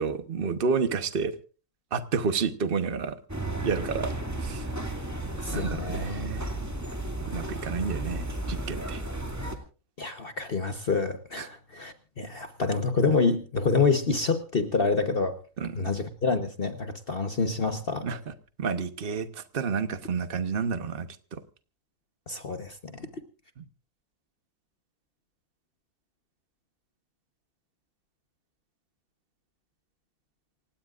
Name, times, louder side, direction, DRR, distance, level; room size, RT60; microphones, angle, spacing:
voice 1, 0.0-1.3 1.9-3.2 3.6-4.1 4.4-4.7 5.5-6.5 7.2-9.0 11.4-11.5 15.6-15.7 18.0-18.3 18.6-21.4 23.6-23.7, right 5 dB, 40° right, 1.2 m, -30 dB
sound 1, 3.3-9.6, right 1 dB, 10° right, 2.2 m, -33 dB
voice 2, 5.4-6.0 10.0-15.3 15.7-18.1 22.3-23.1, left 4 dB, 40° left, 1.2 m, -27 dB
28.0 x 16.5 x 2.5 m
omnidirectional pair, 1.6 m